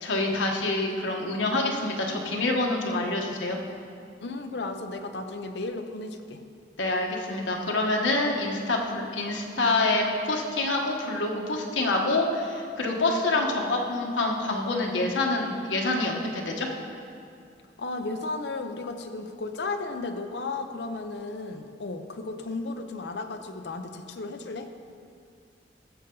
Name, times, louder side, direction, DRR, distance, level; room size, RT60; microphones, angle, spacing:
voice 1, 0.0-3.6 6.8-16.7, left 2 dB, 90° left, 0 dB, 1.3 m, -26 dB
voice 2, 4.2-6.4 17.8-24.7, left 3 dB, 65° left, 6 dB, 0.7 m, -34 dB
15.0 x 6.9 x 3.9 m, 2.4 s
head